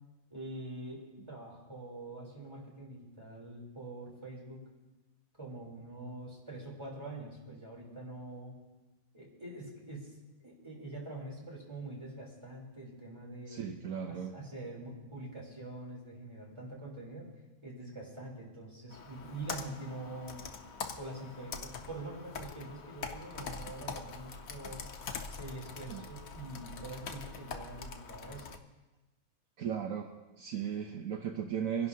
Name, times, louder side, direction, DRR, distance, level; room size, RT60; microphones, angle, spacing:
voice 1, 0.3-1.0 1.3-4.6 5.4-8.6 9.1-13.7 14.1-17.3 17.6-20.4 21.0-24.8 25.4-28.5, right 2 dB, 20° right, -3 dB, 3.5 m, -45 dB
voice 2, 13.5-14.3 25.9-26.0 29.6-30.1 30.4-31.9, right 8 dB, 70° right, 4 dB, 1.2 m, -36 dB
Computer keyboard, 18.9-28.6, left 5 dB, 70° left, 1.3 m, -44 dB
25.0 x 11.0 x 2.8 m, 1.1 s
omnidirectional pair, 1.5 m